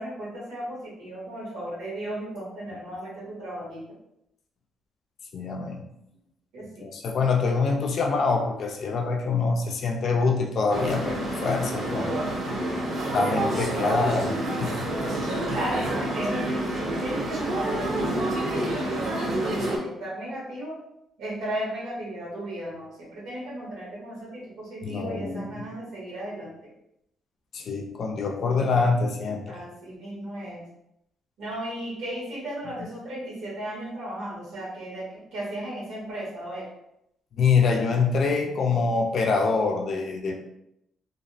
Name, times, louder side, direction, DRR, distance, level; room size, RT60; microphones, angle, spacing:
voice 1, 0.0-3.9 6.5-6.9 12.4-13.1 15.5-20.8 21.2-26.5 29.5-30.6 31.4-36.7, right 1 dB, 90° right, -5 dB, 1.2 m, -35 dB
voice 2, 5.3-5.8 6.8-12.2 13.1-14.3 14.6-14.9 24.8-25.8 27.5-29.6 37.4-40.4, left 4 dB, 60° left, 3 dB, 0.4 m, -25 dB
sound 1, 10.7-19.8, right 1 dB, 65° right, 0.8 m, -28 dB
2.6 x 2.0 x 2.6 m, 0.80 s
cardioid pair, 90°, 0 cm